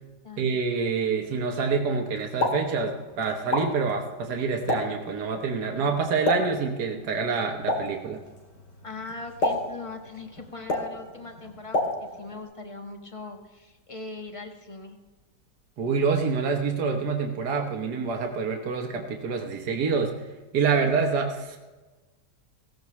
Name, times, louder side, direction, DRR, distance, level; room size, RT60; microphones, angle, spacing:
voice 1, 0.4-8.2 15.8-20.1 20.5-21.6, right 5 dB, 70° right, 2 dB, 1.6 m, -27 dB
Explosion, 2.2-12.4, left 2 dB, 80° left, 2.7 m, -32 dB
voice 2, 8.8-15.0, left 3 dB, 20° left, 4 dB, 1.2 m, -40 dB
16.5 x 14.5 x 3.1 m, 1.2 s
omnidirectional pair, 1.8 m